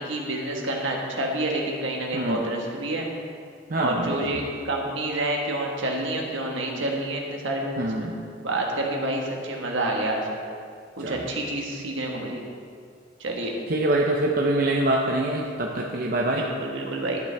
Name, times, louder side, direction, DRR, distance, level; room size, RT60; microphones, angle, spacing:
voice 1, 0.0-3.1 3.8-8.1 8.4-10.2 11.0-12.4 13.2-13.5 16.3-17.2, right 1 dB, 70° right, 0 dB, 1.4 m, -28 dB
voice 2, 2.1-2.4 3.7-4.2 7.8-8.1 11.0-11.3 13.7-16.4, right 1 dB, 45° right, -1 dB, 0.6 m, -25 dB
12.0 x 8.1 x 3.4 m, 2.2 s
head